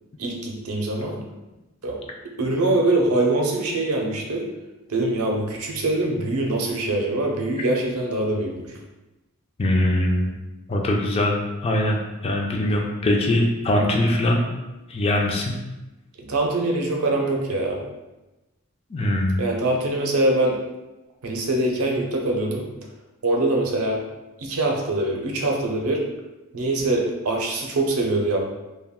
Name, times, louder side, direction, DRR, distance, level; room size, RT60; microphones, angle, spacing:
voice 1, 0.2-1.2 1.8-2.0 2.4-4.5 4.9-8.7 16.2-17.8 19.4-20.6 21.2-22.6 23.2-24.0 24.4-26.1 26.5-28.4, right 2 dB, 80° right, 0 dB, 0.6 m, -23 dB
voice 2, 9.6-10.3 10.7-14.4 14.9-15.5 18.9-19.4, left 1 dB, 25° left, 0 dB, 0.3 m, -22 dB
2.3 x 2.2 x 3.5 m, 1.0 s
head